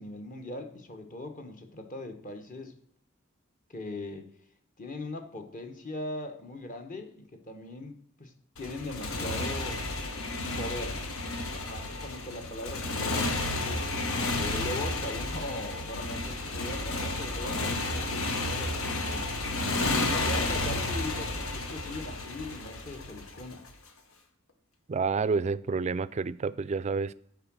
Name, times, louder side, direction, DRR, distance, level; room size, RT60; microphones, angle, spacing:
voice 1, 0.0-2.7 3.7-4.3 4.8-9.8 10.6-11.0 11.5-13.8 14.3-19.3 20.1-23.6, left 1 dB, 40° left, 1.2 m, -40 dB
Motorcycle, 8.6-23.7, left 2 dB, 90° left, 1.2 m, -32 dB
voice 2, 24.9-27.1, right 4 dB, 35° right, 0.3 m, -29 dB
11.0 x 4.7 x 6.1 m
head